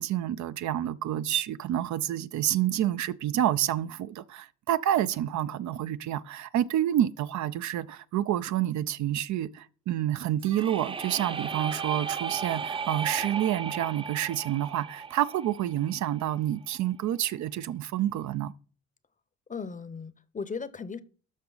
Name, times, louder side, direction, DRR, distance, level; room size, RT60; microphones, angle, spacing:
voice 1, 0.0-18.5, right 12 dB, 70° right, 0.5 m, -28 dB
sound 1, 10.4-16.3, right 6 dB, 20° right, 0.5 m, -35 dB
voice 2, 19.5-21.0, left 5 dB, 25° left, 0.7 m, -37 dB
13.0 x 4.8 x 3.9 m
cardioid pair, 90°, 30 cm